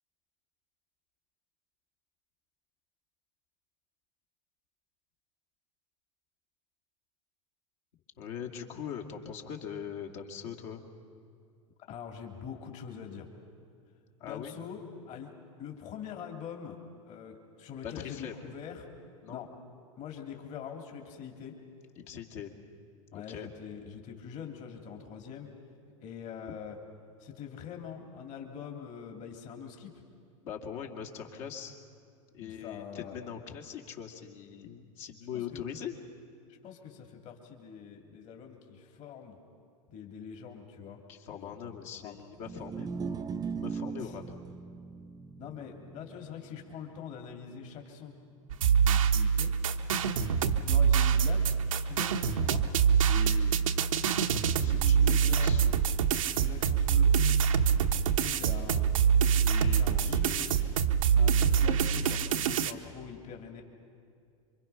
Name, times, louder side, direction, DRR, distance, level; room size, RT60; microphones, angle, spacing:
voice 1, 8.2-10.8 14.2-14.5 17.8-18.3 19.2-19.4 22.0-22.5 23.1-23.5 30.4-31.8 32.3-36.0 41.1-43.0 43.5-44.2 53.1-53.6 54.6-55.6 59.4-60.8, left 8 dB, 60° left, 2 dB, 2.5 m, -41 dB
voice 2, 11.9-13.3 14.2-14.8 15.1-15.3 15.6-16.8 17.1-18.9 19.3-19.5 20.0-21.6 23.1-25.5 26.0-26.8 27.2-29.9 32.4-33.1 35.3-35.6 36.6-39.4 39.9-41.0 41.3-42.1 44.0-44.1 45.4-48.2 48.8-49.5 50.6-52.6 54.6-55.9 56.4-57.4 57.7-58.8 59.8-60.4 61.1-63.6, left 8 dB, 45° left, 2 dB, 2.9 m, -44 dB
sound 1, 42.3-48.7, right 5 dB, 20° right, 0.7 m, -40 dB
sound 2, 48.5-62.7, right 7 dB, 80° right, 1.0 m, -25 dB
27.0 x 24.0 x 5.9 m, 2.4 s
hypercardioid pair, 95°, 17 cm